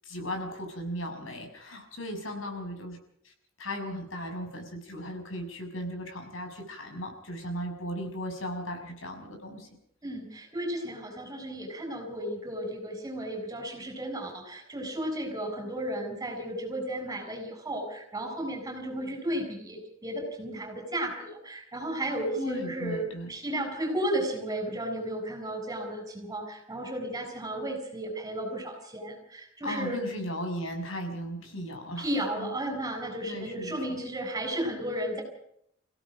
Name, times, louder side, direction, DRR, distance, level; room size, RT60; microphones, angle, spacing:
voice 1, 0.0-3.0 3.2-3.3 3.6-9.7 22.4-23.3 29.6-32.1 32.4-32.5 33.2-33.8, equal, 75° left, 4 dB, 6.2 m, -36 dB
voice 2, 10.0-30.0 32.0-35.2, right 1 dB, 20° right, 3 dB, 7.0 m, -34 dB
29.0 x 17.0 x 5.2 m, 0.71 s
head